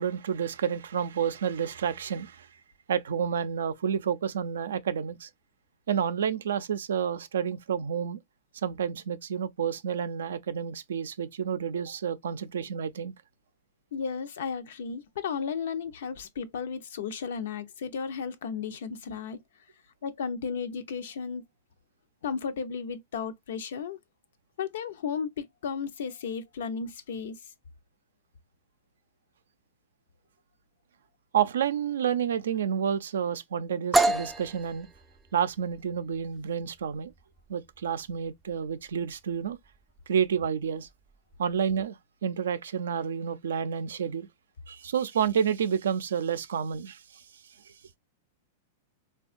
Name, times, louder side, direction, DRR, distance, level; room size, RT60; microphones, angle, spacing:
voice 1, 0.0-2.5 2.9-5.3 5.9-8.2 8.6-13.1 31.3-34.9 35.3-37.1 37.5-39.6 40.1-40.9 41.4-42.0 42.2-44.3 44.7-47.2 47.7-47.8, right 8 dB, 90° right, 0.4 m, -29 dB
voice 2, 13.9-19.4 20.0-21.4 22.2-24.0 24.6-27.4, left 6 dB, 75° left, 0.6 m, -34 dB
sound 1, 33.9-41.6, right 2 dB, 10° right, 0.3 m, -32 dB
3.6 x 2.3 x 2.4 m
hypercardioid pair, 135°, 0 cm